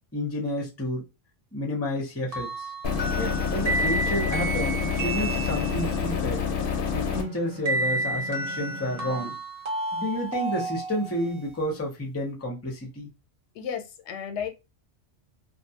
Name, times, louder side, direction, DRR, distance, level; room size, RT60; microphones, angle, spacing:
voice 1, 0.1-1.0 1.5-2.7 3.2-6.4 6.9-9.4 9.9-13.1, left 1 dB, 15° left, 0.6 m, -30 dB
sound 1, 2.3-6.1 7.7-11.4, right 2 dB, 35° right, 0.8 m, -31 dB
sound 2, 2.8-7.2, left 6 dB, 60° left, 0.7 m, -28 dB
sound 3, 7.0-9.3, right 2 dB, 75° right, 1.0 m, -42 dB
voice 2, 13.6-14.5, left 7 dB, 90° left, 0.9 m, -33 dB
2.5 x 2.2 x 2.7 m
omnidirectional pair, 1.1 m